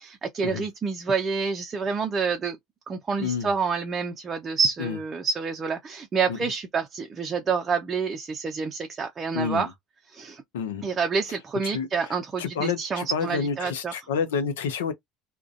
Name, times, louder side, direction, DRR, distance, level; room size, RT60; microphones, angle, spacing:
voice 1, 0.0-2.6 2.9-9.7 10.1-10.4 10.8-13.9, right 5 dB, 30° right, 0.5 m, -28 dB
voice 2, 3.2-3.5 4.8-5.0 6.3-6.4 9.3-9.7 10.5-10.9 11.6-14.9, left 6 dB, 80° left, 0.5 m, -29 dB
2.4 x 2.1 x 2.4 m
hypercardioid pair, 80°, 0 cm